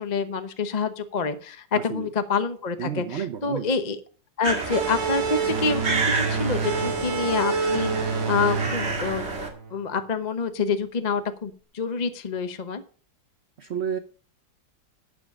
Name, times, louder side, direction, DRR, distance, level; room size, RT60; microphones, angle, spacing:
voice 1, 0.0-4.0 4.4-9.3 9.7-12.8, left 5 dB, 30° left, 8 dB, 0.8 m, -27 dB
voice 2, 1.7-2.1 2.8-3.7 13.6-14.0, right 8 dB, 55° right, 10 dB, 0.7 m, -31 dB
sound 1, 4.4-9.5, right 3 dB, 35° right, 2.1 m, -30 dB
sound 2, 4.7-10.0, right 5 dB, 75° right, 2.2 m, -28 dB
11.5 x 8.3 x 5.4 m, 0.41 s
omnidirectional pair, 2.0 m